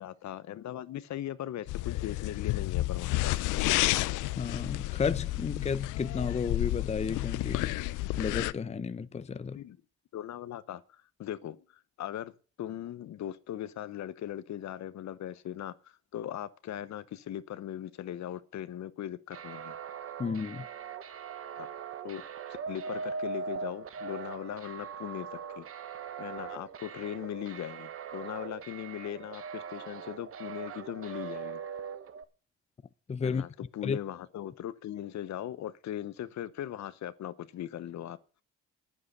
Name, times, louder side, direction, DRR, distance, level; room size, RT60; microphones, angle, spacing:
voice 1, 0.0-3.3 9.5-9.8 10.1-12.3 12.6-19.7 21.6-21.7 22.0-22.2 22.7-25.7 26.2-31.6 33.2-38.2, left 11 dB, 65° left, 0.9 m, -39 dB
sound 1, 1.7-8.5, left 17 dB, 90° left, 0.5 m, -31 dB
voice 2, 4.4-7.8 8.2-9.6 20.2-20.7 33.1-33.5 33.8-34.0, left 5 dB, 20° left, 0.6 m, -32 dB
sound 2, 19.3-32.2, right 6 dB, 45° right, 1.0 m, -41 dB
9.9 x 9.6 x 6.6 m
cardioid pair, 90°, 30 cm